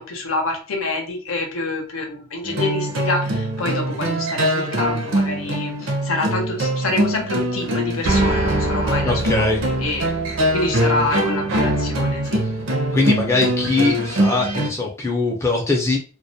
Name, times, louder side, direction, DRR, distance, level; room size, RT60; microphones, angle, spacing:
voice 1, 0.0-9.5 9.8-10.1 10.5-12.4, left 2 dB, 80° left, 3 dB, 0.7 m, -26 dB
sound 1, 2.4-14.7, right 1 dB, 65° right, 0.6 m, -22 dB
voice 2, 9.0-9.6 12.9-16.0, left 3 dB, 15° left, -1 dB, 0.5 m, -21 dB
2.3 x 2.0 x 2.6 m, 0.37 s
head